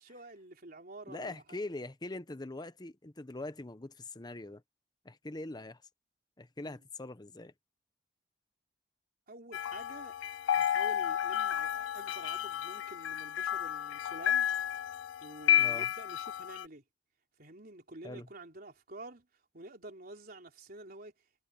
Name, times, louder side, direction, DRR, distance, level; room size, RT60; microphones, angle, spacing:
voice 1, 0.0-1.7 6.6-6.8 9.3-10.2 10.4-14.5 15.2-16.8 17.4-19.3 19.5-21.1, right 2 dB, 55° right, 3.8 m, -49 dB
voice 2, 1.1-4.6 5.0-5.8 6.4-7.5 15.6-15.9 18.0-18.3, left 2 dB, 20° left, 0.8 m, -42 dB
sound 1, 9.5-16.7, left 10 dB, 90° left, 0.3 m, -32 dB
head